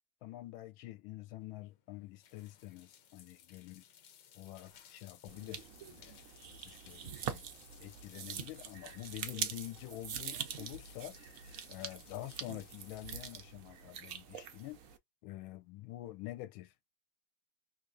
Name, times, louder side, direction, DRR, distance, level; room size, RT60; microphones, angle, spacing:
voice 1, 0.2-3.8 4.3-6.2 6.5-7.4 7.8-11.2 11.7-14.8 15.2-16.7, left 16 dB, 85° left, 1.4 m, -47 dB
sound 1, 1.4-14.6, left 9 dB, 65° left, 1.3 m, -61 dB
sound 2, 5.3-15.0, right 8 dB, 80° right, 0.7 m, -44 dB
3.4 x 2.5 x 2.5 m
omnidirectional pair, 2.2 m